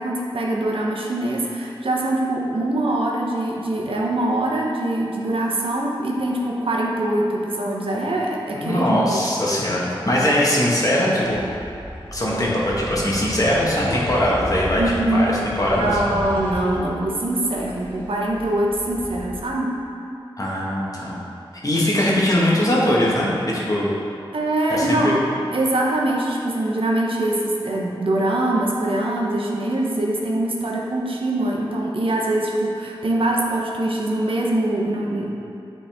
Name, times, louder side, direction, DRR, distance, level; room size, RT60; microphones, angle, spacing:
voice 1, 0.0-9.2 14.7-15.4 15.8-19.8 24.3-25.2 25.5-35.3, right 1 dB, 70° right, -2 dB, 0.8 m, -23 dB
voice 2, 8.5-11.4 12.1-14.8 15.1-15.9 20.4-21.3 21.6-23.9 24.7-25.2, left 1 dB, 40° left, -5 dB, 1.4 m, -21 dB
sound 1, 11.3-19.4, equal, 20° left, 1.0 m, -33 dB
8.5 x 4.1 x 3.5 m, 2.7 s
wide cardioid pair, 60°, 9 cm